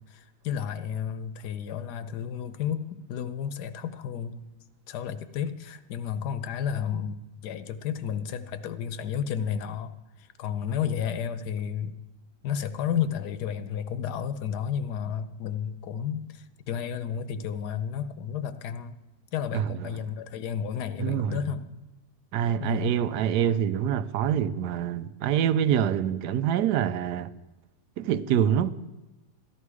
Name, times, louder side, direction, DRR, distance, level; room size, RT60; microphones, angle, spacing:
voice 1, 0.1-4.4 4.9-9.9 10.4-11.9 12.4-19.0 19.3-21.6 22.6-22.9, left 8 dB, 80° left, 1.3 m, -32 dB
voice 2, 19.5-19.9 21.0-21.4 22.3-27.3 28.0-28.7, right 9 dB, 85° right, 1.2 m, -25 dB
14.0 x 11.0 x 4.8 m
omnidirectional pair, 1.7 m